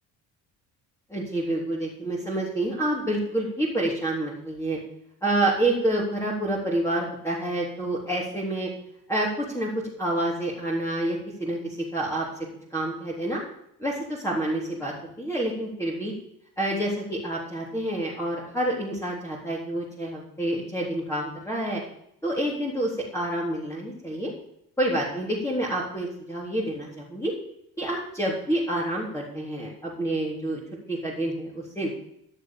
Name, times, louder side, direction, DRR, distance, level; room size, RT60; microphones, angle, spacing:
voice 1, 1.1-4.8 5.2-8.7 9.1-9.7 10.0-12.3 12.7-13.4 13.8-16.1 16.6-21.8 22.2-24.3 24.8-27.3 27.8-30.6 30.9-31.9, right 1 dB, 5° left, -4 dB, 3.8 m, -28 dB
12.5 x 6.7 x 7.3 m, 0.74 s
hypercardioid pair, 60°, 43 cm